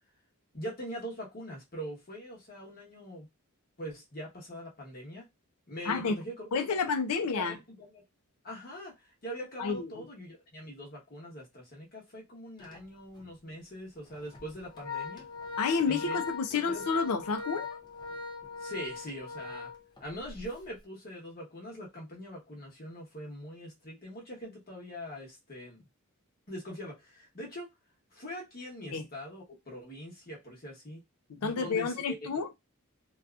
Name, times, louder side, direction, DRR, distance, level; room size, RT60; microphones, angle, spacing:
voice 1, 0.5-3.3 3.8-5.3 5.7-6.5 7.3-8.0 8.4-15.3 15.8-16.2 16.5-16.8 18.6-19.7 20.0-25.8 26.5-27.7 28.1-31.0 31.4-32.4, equal, 45° left, 1.1 m, -42 dB
voice 2, 5.9-6.2 6.5-7.6 9.6-10.0 15.6-17.7 28.9-29.1 31.3-32.5, left 5 dB, 80° left, 0.5 m, -30 dB
Organ, 12.6-12.8 13.2-13.3 14.1-20.4, left 5 dB, 20° left, 0.5 m, -40 dB
2.7 x 2.3 x 2.3 m
head